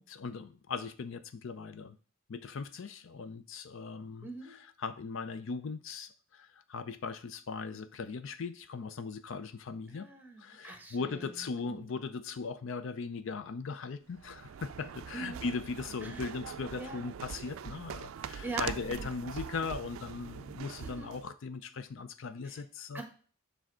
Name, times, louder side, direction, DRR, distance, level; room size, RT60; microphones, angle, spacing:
voice 1, 0.0-2.0 2.3-4.3 4.8-10.1 10.4-23.0, left 4 dB, 65° left, 0.5 m, -39 dB
voice 2, 4.2-4.6 9.9-11.9 15.1-15.5 16.0-16.3 16.8-17.1 18.4-19.2 20.8-21.2 22.4-22.6 22.9-23.1, right 2 dB, 10° right, 1.2 m, -43 dB
sound 1, 14.1-21.3, right 7 dB, 75° right, 0.3 m, -43 dB
7.3 x 3.4 x 6.1 m
head